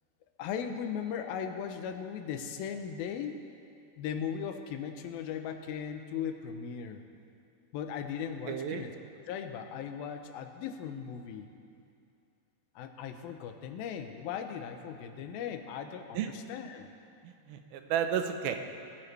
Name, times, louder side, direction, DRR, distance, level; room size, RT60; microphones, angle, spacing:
voice 1, 0.4-3.4 4.0-7.0 7.7-8.9 9.3-11.5 12.8-16.9, left 7 dB, 80° left, 6 dB, 2.5 m, -38 dB
voice 2, 8.5-8.8 16.1-16.3 17.2-18.6, right 8 dB, 80° right, 6 dB, 2.6 m, -32 dB
21.0 x 13.5 x 3.3 m, 2.5 s
omnidirectional pair, 4.3 m